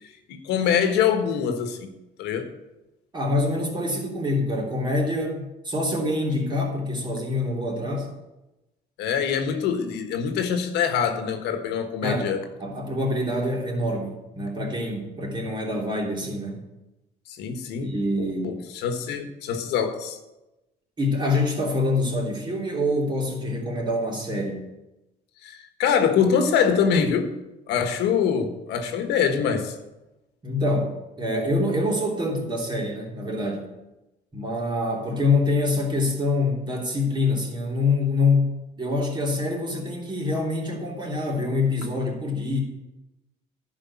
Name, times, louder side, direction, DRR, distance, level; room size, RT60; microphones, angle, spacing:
voice 1, 0.3-1.9 2.2-2.5 9.0-12.4 17.3-20.2 25.4-27.3 27.7-29.7, left 7 dB, 90° left, 6 dB, 1.4 m, -24 dB
voice 2, 3.1-8.1 12.0-12.3 12.6-16.6 17.8-18.6 21.0-24.6 30.4-30.9 31.2-33.7 34.3-42.6, left 2 dB, 25° right, -1 dB, 3.2 m, -25 dB
11.5 x 5.2 x 8.5 m, 0.98 s
cardioid pair, 110°, 17 cm